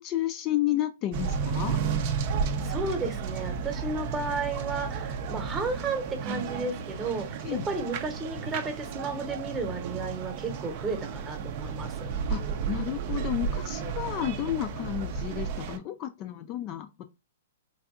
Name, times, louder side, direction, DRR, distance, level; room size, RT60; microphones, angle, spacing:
voice 1, 0.0-1.8 7.4-7.7 12.3-17.1, left 13 dB, 35° left, 0.3 m, -31 dB
sound 1, 1.1-15.8, right 6 dB, 45° right, 0.4 m, -33 dB
voice 2, 2.6-7.4 7.7-12.1, right 3 dB, 20° right, 0.9 m, -33 dB
3.4 x 2.6 x 2.4 m
hypercardioid pair, 130°, 0 cm